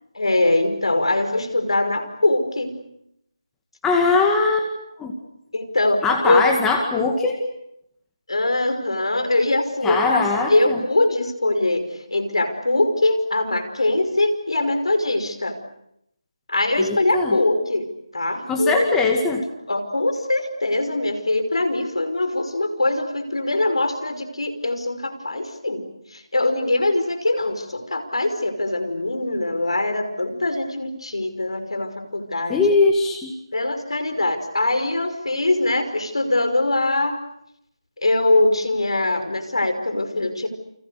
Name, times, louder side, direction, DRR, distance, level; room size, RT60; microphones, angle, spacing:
voice 1, 0.1-2.7 5.5-6.4 8.3-10.2 10.5-15.6 16.5-17.9 18.1-19.0 19.7-25.9 26.1-32.7 33.5-37.2 38.0-40.5, left 2 dB, 75° left, 8 dB, 5.6 m, -22 dB
voice 2, 3.8-4.7 5.0-5.1 6.0-7.4 9.8-10.8 16.8-17.4 18.5-19.4 32.5-33.3, left 4 dB, 5° left, 2 dB, 2.2 m, -20 dB
29.5 x 29.0 x 6.9 m, 0.77 s
figure-of-eight pair, 160°, 3 cm